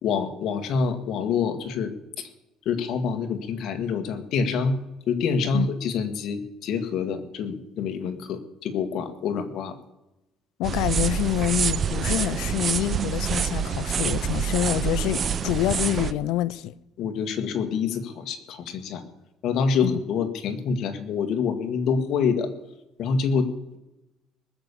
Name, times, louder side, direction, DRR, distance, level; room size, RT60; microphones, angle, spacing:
voice 1, 0.0-2.3 2.7-4.8 5.1-9.8 17.0-19.0 19.4-22.5 23.0-23.8, left 5 dB, 55° left, 1.8 m, -26 dB
voice 2, 10.6-16.7 19.8-20.0, left 15 dB, 75° left, 0.6 m, -26 dB
sound 1, 10.6-16.1, right 7 dB, 30° right, 0.7 m, -26 dB
20.0 x 7.0 x 8.4 m
cardioid pair, 155°, 0 cm